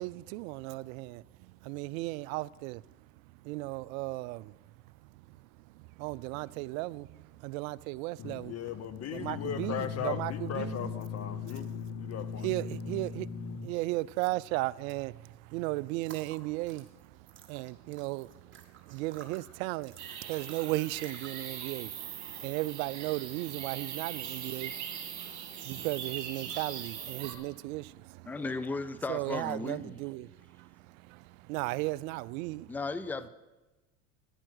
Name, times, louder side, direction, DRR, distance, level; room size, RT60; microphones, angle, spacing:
voice 1, 0.0-2.8 3.4-4.5 5.3-5.4 5.8-8.5 9.1-10.9 12.4-13.3 13.6-24.7 25.3-28.4 29.1-32.7, right 20 dB, 70° right, 0.5 m, -36 dB
voice 2, 8.2-13.7, left 7 dB, 35° left, 0.8 m, -36 dB
sound 1, 16.0-21.5, right 7 dB, 25° right, 1.7 m, -54 dB
sound 2, 20.0-27.3, right 8 dB, 40° right, 2.8 m, -41 dB
voice 3, 28.3-30.0 32.7-33.3, left 3 dB, 5° left, 0.4 m, -35 dB
10.0 x 10.0 x 6.3 m
hypercardioid pair, 90°, 43 cm